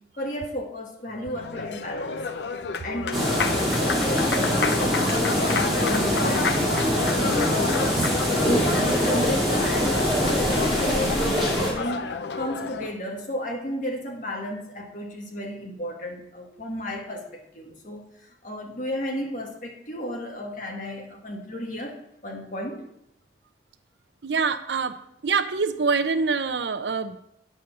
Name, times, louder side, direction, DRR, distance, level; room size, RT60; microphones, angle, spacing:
voice 1, 0.0-2.2 2.8-12.0 12.4-18.0 18.4-21.9 22.2-22.8, equal, 45° left, 1 dB, 1.8 m, -33 dB
Applause, 1.1-13.0, left 5 dB, 75° left, 0.6 m, -30 dB
sound 1, 3.1-11.7, equal, ahead, 3.0 m, -24 dB
voice 2, 24.2-25.0 25.2-27.2, right 5 dB, 80° right, 11 dB, 0.6 m, -25 dB
9.1 x 5.1 x 6.9 m, 0.78 s
head